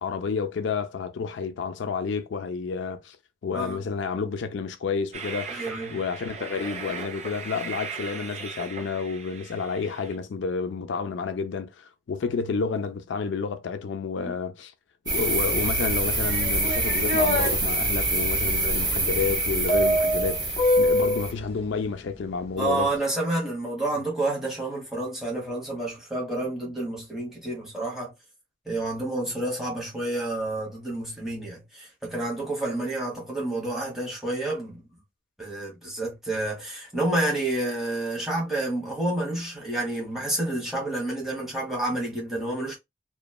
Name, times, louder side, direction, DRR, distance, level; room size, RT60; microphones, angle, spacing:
voice 1, 0.0-3.2 3.4-5.6 5.9-14.7 15.1-22.9, left 5 dB, 80° left, 0.4 m, -30 dB
Train, 5.1-10.1, right 5 dB, 35° right, 0.5 m, -38 dB
voice 2, 5.5-6.0 14.2-14.3 22.6-28.1 28.7-34.8 35.4-42.8, right 2 dB, ahead, 1.1 m, -29 dB
sound 1, 15.1-21.3, right 2 dB, 20° right, 1.2 m, -26 dB
sound 2, 16.2-17.5 19.7-21.3, equal, 30° left, 0.9 m, -23 dB
3.0 x 2.2 x 2.3 m
head